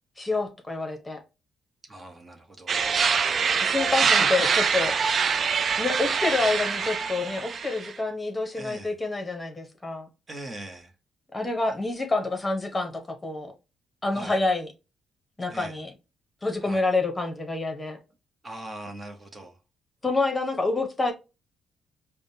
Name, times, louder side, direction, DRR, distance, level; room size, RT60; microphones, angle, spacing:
voice 1, 0.2-1.2 3.6-5.0 5.8-10.1 11.3-13.5 14.0-14.7 15.4-15.9 16.4-18.0 20.0-21.1, left 3 dB, 20° left, 1.0 m, -27 dB
voice 2, 1.9-2.9 3.8-4.3 8.6-9.0 10.3-10.9 14.1-14.4 15.5-15.8 16.6-16.8 18.4-19.6, right 1 dB, 25° right, 0.9 m, -41 dB
sound 1, 2.7-7.9, right 6 dB, 50° right, 0.4 m, -24 dB
5.0 x 2.2 x 2.7 m
cardioid pair, 90°, 0 cm